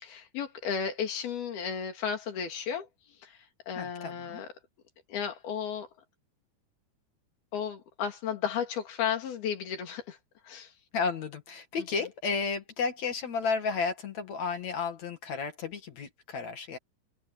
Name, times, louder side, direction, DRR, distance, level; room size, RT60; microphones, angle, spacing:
voice 1, 0.0-2.9 3.2-3.4 3.7-4.5 5.1-5.9 7.5-10.2 10.4-10.7 11.8-12.1, left 7 dB, 70° left, 4.8 m, -34 dB
voice 2, 3.8-4.4 10.9-16.8, left 5 dB, 50° left, 2.7 m, -32 dB
open air
omnidirectional pair, 4.6 m